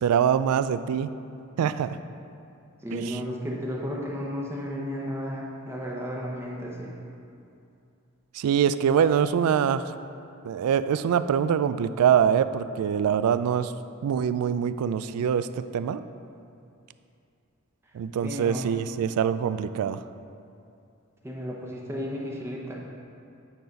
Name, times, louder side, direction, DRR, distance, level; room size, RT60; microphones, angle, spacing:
voice 1, 0.0-1.1 1.6-2.0 2.9-3.2 8.3-9.9 10.4-13.7 14.0-15.5 15.7-16.0 17.9-20.0, right 8 dB, 85° right, 15 dB, 0.3 m, -24 dB
voice 2, 2.8-7.0 18.2-18.7 21.2-22.7, equal, 10° right, -3 dB, 0.8 m, -33 dB
9.1 x 4.0 x 5.2 m, 2.6 s
head